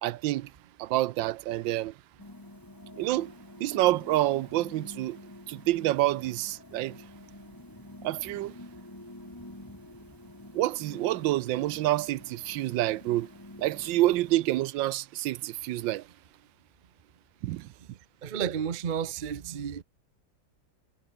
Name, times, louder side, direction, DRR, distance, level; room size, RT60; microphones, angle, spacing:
voice 1, 0.0-0.5 0.8-1.9 3.0-3.3 3.6-5.2 5.5-7.0 8.0-8.5 10.5-13.3 13.6-16.1 17.4-17.7, right 15 dB, 80° right, 1.3 m, -27 dB
sound 1, 2.2-14.4, left 1 dB, 10° left, 2.4 m, -48 dB
voice 2, 18.2-19.8, right 8 dB, 40° right, 0.7 m, -32 dB
omnidirectional pair, 2.1 m